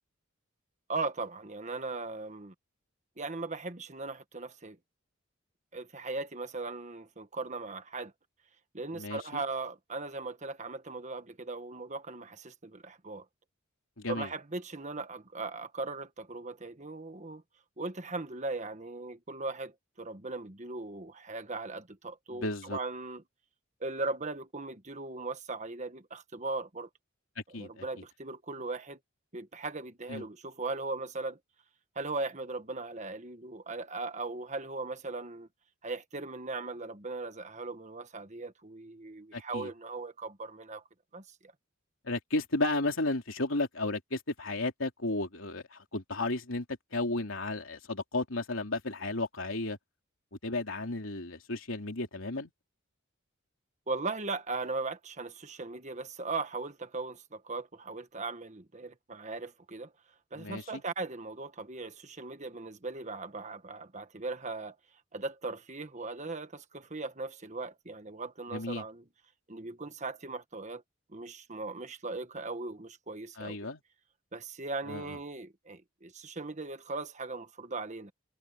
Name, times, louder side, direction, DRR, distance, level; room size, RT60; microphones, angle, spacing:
voice 1, 0.9-2.5 3.2-4.8 5.7-8.1 8.7-13.2 14.1-17.4 17.8-23.2 23.8-26.9 27.6-29.0 29.3-31.4 31.9-35.5 35.8-40.8 41.1-41.5 53.9-59.9 60.3-64.8 65.1-69.0 69.5-70.8 71.1-73.7 74.3-78.1, right 3 dB, 35° right, 1.5 m, -38 dB
voice 2, 8.9-9.4 14.0-14.3 22.3-22.8 27.5-27.8 30.1-30.3 39.3-39.7 42.0-46.6 46.9-49.8 50.4-52.5 60.4-60.8 68.5-68.8 73.4-73.8 74.9-75.2, left 2 dB, 70° left, 3.3 m, -33 dB
head